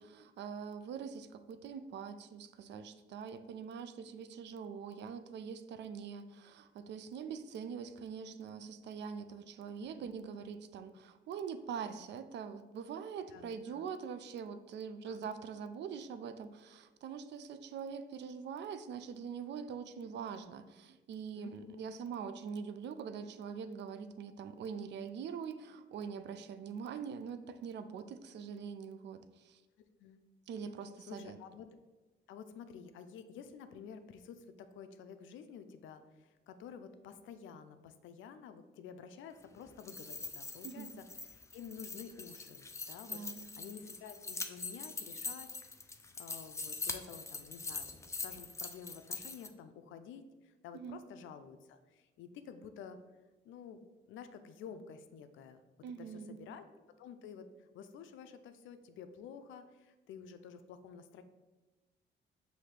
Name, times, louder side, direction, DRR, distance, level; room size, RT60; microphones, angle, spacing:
voice 1, 0.0-29.6 30.5-31.4 40.6-41.0 43.1-43.5 50.7-51.0 55.8-56.5, right 6 dB, 65° right, 11 dB, 0.4 m, -44 dB
voice 2, 9.8-10.1 13.3-13.9 15.1-15.4 21.3-21.8 30.0-30.2 31.1-31.7 32.3-45.5 45.9-47.9 48.2-53.0 53.4-53.8 54.1-55.6 56.0-56.7 57.0-61.2, left 7 dB, 75° left, 9 dB, 0.4 m, -51 dB
sound 1, 39.7-49.5, left 3 dB, 15° left, 0.4 m, -43 dB
5.8 x 2.7 x 3.2 m, 1.2 s
cardioid pair, 90°, 20 cm